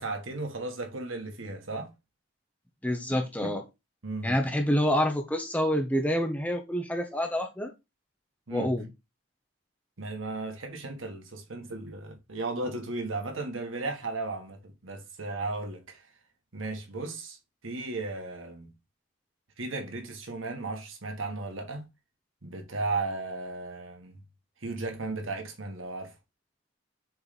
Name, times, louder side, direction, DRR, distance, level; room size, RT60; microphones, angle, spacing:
voice 1, 0.0-1.9 3.4-3.5 4.0-4.5 8.5-8.7 10.0-16.1 16.5-17.4 17.6-18.7 19.6-21.8 22.4-24.2 24.6-26.2, right 3 dB, 85° right, 1.5 m, -35 dB
voice 2, 2.8-3.6 4.2-7.7 8.5-8.9, equal, 5° left, 0.9 m, -27 dB
6.8 x 3.3 x 4.2 m
head